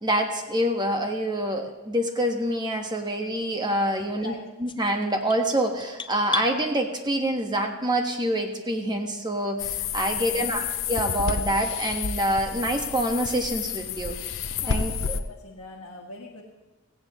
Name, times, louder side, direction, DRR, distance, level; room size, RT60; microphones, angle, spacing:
voice 1, 0.0-4.3 4.6-14.2 14.7-15.2, right 1 dB, 20° right, 3 dB, 1.4 m, -26 dB
voice 2, 3.9-4.4 10.1-10.6 14.6-16.4, left 2 dB, 80° left, -2 dB, 1.7 m, -43 dB
sound 1, 4.7-6.5, left 4 dB, 20° left, 0.5 m, -34 dB
sound 2, 9.6-15.2, left 7 dB, 60° left, 0.7 m, -30 dB
17.0 x 16.0 x 3.1 m, 1.1 s
head